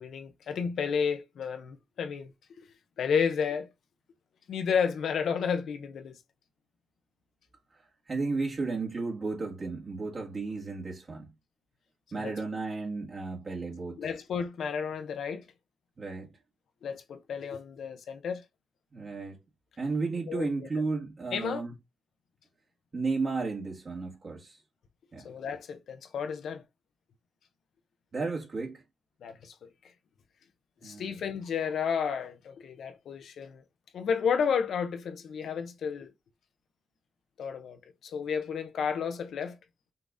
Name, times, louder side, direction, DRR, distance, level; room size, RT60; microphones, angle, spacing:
voice 1, 0.0-2.3 2.6-2.7 3.0-3.7 4.5-6.1 12.1-12.3 14.0-15.4 16.8-18.4 20.3-20.7 21.3-21.6 25.2-26.6 29.2-29.7 30.8-33.6 33.9-36.1 37.4-39.6, left 6 dB, 80° left, 0.9 m, -32 dB
voice 2, 8.1-11.3 12.1-14.1 16.0-16.3 18.9-19.4 19.8-21.7 22.9-24.6 25.1-25.3 28.1-28.8 30.8-31.1, right 3 dB, 50° right, 1.5 m, -33 dB
5.7 x 2.5 x 3.5 m
cardioid pair, 65°, 0 cm